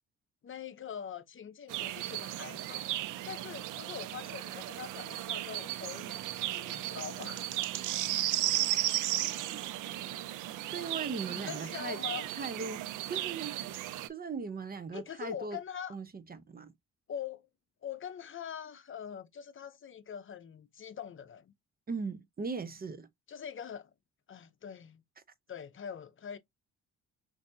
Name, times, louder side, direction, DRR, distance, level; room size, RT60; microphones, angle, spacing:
voice 1, 0.4-2.9 3.3-7.6 11.3-12.3 14.9-16.0 17.1-17.5 17.8-21.5 23.3-23.9 24.3-25.0 25.5-26.4, left 8 dB, 40° left, 0.7 m, -43 dB
sound 1, 1.7-14.1, right 14 dB, 90° right, 0.5 m, -35 dB
voice 2, 10.7-12.0 12.3-12.8 13.1-15.6 15.9-16.7 21.9-23.1, right 4 dB, 30° right, 0.7 m, -39 dB
5.7 x 2.7 x 2.6 m
cardioid pair, 90°, 30 cm